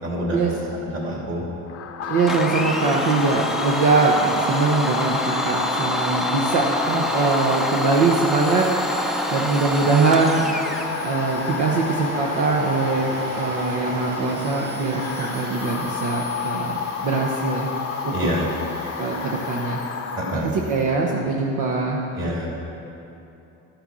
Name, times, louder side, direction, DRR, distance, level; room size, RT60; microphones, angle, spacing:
voice 1, 0.0-0.5 0.8-1.4 18.1-18.5 20.1-20.5 22.1-22.5, equal, 40° right, -3 dB, 3.0 m, -27 dB
sound 1, 1.7-20.4, left 6 dB, 45° left, 0.7 m, -31 dB
Domestic sounds home sounds, 2.0-20.9, right 2 dB, 85° right, 1.6 m, -38 dB
voice 2, 2.1-17.7 18.0-18.2 19.0-19.8 20.3-22.0, right 3 dB, 70° right, -1 dB, 1.1 m, -22 dB
Domestic sounds home sounds 2, 2.3-10.9, left 1 dB, ahead, 0.6 m, -26 dB
13.0 x 6.6 x 6.2 m, 2.9 s
cardioid pair, 130°, 32 cm